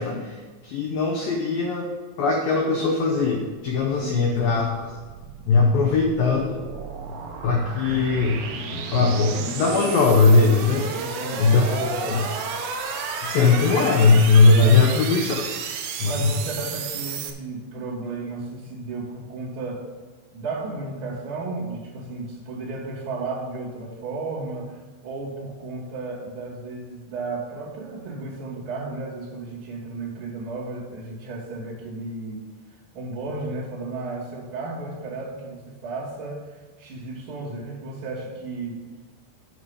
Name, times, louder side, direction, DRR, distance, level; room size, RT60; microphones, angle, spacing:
voice 1, 0.0-1.9 2.2-4.9 5.5-6.6 7.4-8.4 8.7-10.9 11.4-12.2 13.2-15.5 16.0-16.3, left 4 dB, 90° left, 1 dB, 2.0 m, -20 dB
voice 2, 3.9-4.5 5.6-6.0 10.9-12.0 14.6-14.9 16.0-19.9 20.3-32.5 32.9-38.8, right 3 dB, 35° right, -8 dB, 2.9 m, -34 dB
sound 1, 4.7-17.3, right 6 dB, 75° right, 2.9 m, -32 dB
9.1 x 6.4 x 5.5 m, 1.3 s
omnidirectional pair, 5.4 m